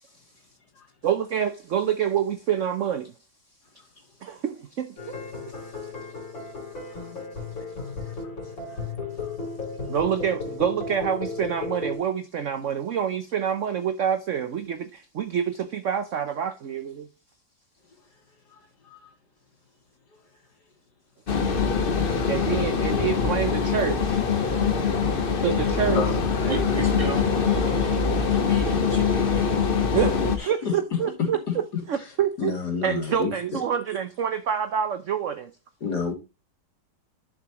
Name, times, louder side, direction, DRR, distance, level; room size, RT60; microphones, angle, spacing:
voice 1, 1.0-3.1 4.2-5.9 9.9-17.1 22.3-24.2 25.1-26.0 27.8-27.9 29.9-31.6 31.9-32.6 32.8-35.5, right 8 dB, 65° right, 0.7 m, -27 dB
sound 1, 5.0-12.0, left 3 dB, 85° left, 4.3 m, -34 dB
sound 2, 21.3-30.4, left 5 dB, 40° left, 0.9 m, -23 dB
voice 2, 21.5-21.9 25.9-26.2 26.4-26.6 30.4-30.7 32.4-33.3 35.8-36.1, left 5 dB, 55° left, 3.2 m, -30 dB
voice 3, 26.5-29.6, right 2 dB, 30° right, 1.9 m, -36 dB
11.0 x 7.0 x 2.9 m
omnidirectional pair, 2.1 m